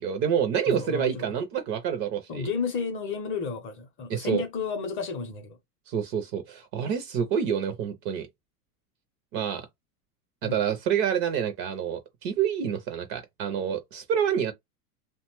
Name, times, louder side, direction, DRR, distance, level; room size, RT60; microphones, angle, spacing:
voice 1, 0.0-2.5 4.1-4.4 5.9-8.3 9.3-9.7 10.4-14.5, right 8 dB, 30° right, 0.4 m, -27 dB
voice 2, 0.7-1.3 2.3-5.6 10.4-10.6, left 5 dB, 30° left, 0.6 m, -32 dB
2.8 x 2.2 x 2.9 m
hypercardioid pair, 120°, 46 cm